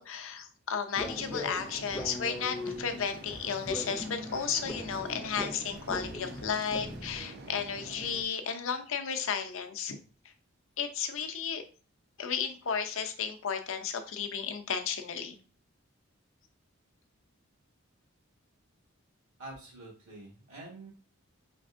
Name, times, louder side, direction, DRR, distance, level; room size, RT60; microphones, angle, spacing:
voice 1, 0.0-10.0 10.8-11.6 12.2-15.4, left 6 dB, 70° left, 7 dB, 0.6 m, -33 dB
sound 1, 0.9-8.2, right 2 dB, 45° right, 0.5 m, -47 dB
sound 2, 1.0-7.2, left 1 dB, 10° left, 0.5 m, -40 dB
voice 2, 19.4-20.9, right 2 dB, 75° right, -4 dB, 1.5 m, -46 dB
5.2 x 3.4 x 2.5 m, 0.37 s
head